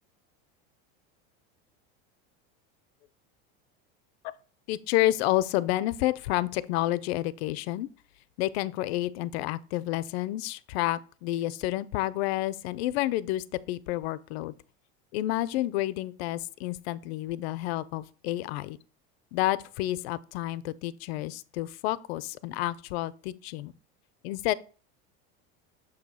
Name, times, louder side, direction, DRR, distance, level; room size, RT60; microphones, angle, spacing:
voice 1, 4.7-7.9 8.4-14.5 15.1-18.8 19.3-23.7 24.2-24.5, left 15 dB, 85° left, 0.5 m, -30 dB
6.7 x 2.7 x 5.3 m
cardioid pair, 175°, 31 cm